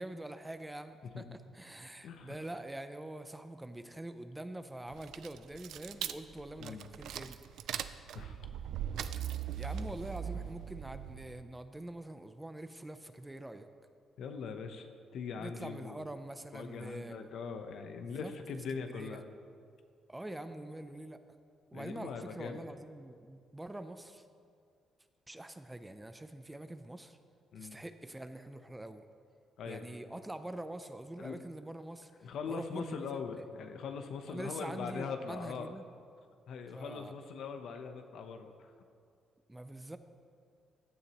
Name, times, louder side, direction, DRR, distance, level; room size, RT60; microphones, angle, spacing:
voice 1, 0.0-7.4 9.6-13.7 15.4-17.3 18.0-19.2 20.1-21.2 21.7-24.2 25.3-27.2 27.6-29.1 29.6-32.1 32.5-33.2 34.3-35.8 36.7-37.1 39.5-40.0, right 1 dB, 10° right, 10 dB, 0.6 m, -45 dB
voice 2, 2.0-2.4 6.6-6.9 7.8-8.5 9.8-9.9 10.3-10.5 14.2-14.9 15.1-16.0 16.5-19.2 21.7-22.6 27.5-27.8 29.6-29.9 31.2-31.4 32.2-35.7 36.5-38.7, left 5 dB, 75° left, 6 dB, 0.9 m, -42 dB
sound 1, 4.9-11.4, right 9 dB, 75° right, 0.4 m, -40 dB
15.5 x 9.8 x 3.0 m, 2.3 s
cardioid pair, 90°, 0 cm